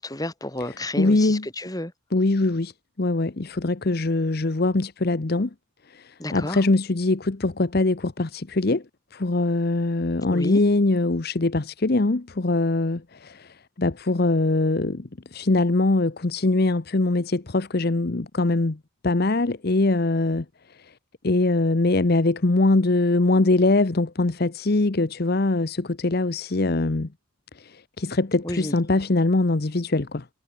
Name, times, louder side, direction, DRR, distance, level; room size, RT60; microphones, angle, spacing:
voice 1, 0.0-1.9 6.2-6.6 10.3-10.6 28.4-28.7, left 1 dB, 20° left, 2.6 m, -31 dB
voice 2, 1.0-1.4 2.1-2.7 3.0-5.5 5.9-8.8 9.1-18.8 19.0-20.4 21.2-27.1 27.6-30.2, left 2 dB, 50° left, 0.9 m, -22 dB
head